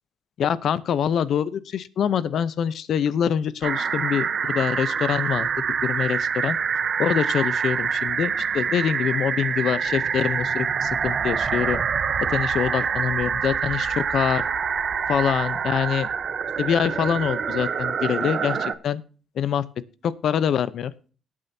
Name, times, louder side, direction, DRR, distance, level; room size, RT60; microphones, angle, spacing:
voice 1, 0.4-5.5 5.8-6.6 7.0-11.8 12.3-14.5 15.1-16.1 16.6-19.0 19.4-19.6 20.0-20.9, left 8 dB, 65° left, 17 dB, 0.7 m, -25 dB
sound 1, 3.6-18.7, right 6 dB, 50° right, 0.8 m, -26 dB
17.5 x 8.7 x 2.8 m, 0.37 s
cardioid pair, 90°, 0 cm